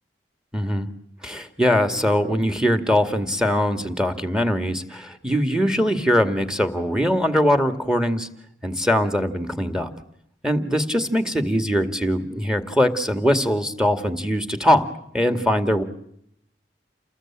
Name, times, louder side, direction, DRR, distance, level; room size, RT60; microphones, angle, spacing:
voice 1, 0.5-0.9 1.2-8.3 8.6-9.9 10.4-14.9 15.1-15.8, equal, 5° right, 9 dB, 2.2 m, -21 dB
29.5 x 20.5 x 8.9 m, 0.74 s
head